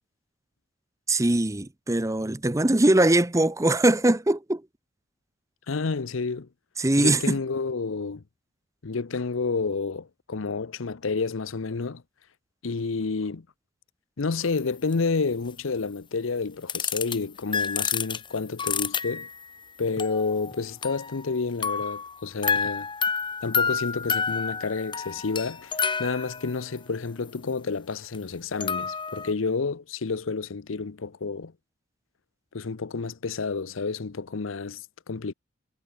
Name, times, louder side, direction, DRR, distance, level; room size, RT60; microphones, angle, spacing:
voice 1, 1.1-4.6 6.8-7.4, right 1 dB, 15° right, 0.8 m, -21 dB
voice 2, 5.7-6.5 7.0-8.2 8.8-12.0 12.6-13.5 14.2-19.3 19.8-22.9 23.4-31.5 32.5-35.3, left 4 dB, 75° left, 0.7 m, -30 dB
sound 1, 14.6-14.7 14.9-15.0 16.7-17.2 17.5-19.5 20.0-21.4 21.6-26.8 28.1-28.2 28.6-29.3, left 5 dB, 25° left, 1.4 m, -29 dB
head